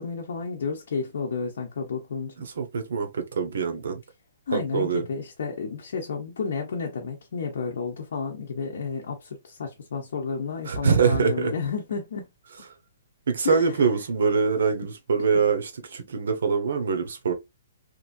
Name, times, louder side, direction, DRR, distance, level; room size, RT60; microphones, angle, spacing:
voice 1, 0.0-2.3 4.5-12.3 13.4-13.7, left 5 dB, 55° left, 0.7 m, -31 dB
voice 2, 2.4-4.0 4.5-5.0 10.6-11.5 13.3-17.3, right 5 dB, 65° right, 0.8 m, -24 dB
3.0 x 2.5 x 2.4 m
hypercardioid pair, 180°, 0 cm